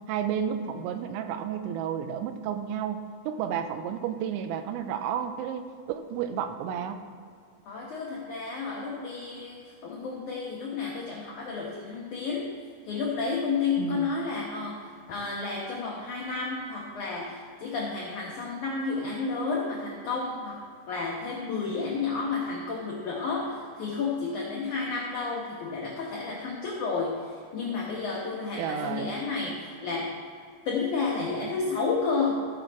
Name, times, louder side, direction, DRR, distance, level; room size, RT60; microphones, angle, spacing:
voice 1, 0.1-3.0 3.3-7.0 13.8-14.1 28.6-29.1, right 8 dB, 85° right, 8 dB, 3.0 m, -31 dB
voice 2, 7.6-30.2 30.6-32.5, left 4 dB, 75° left, -3 dB, 1.8 m, -31 dB
14.5 x 7.2 x 4.7 m, 2.3 s
omnidirectional pair, 5.3 m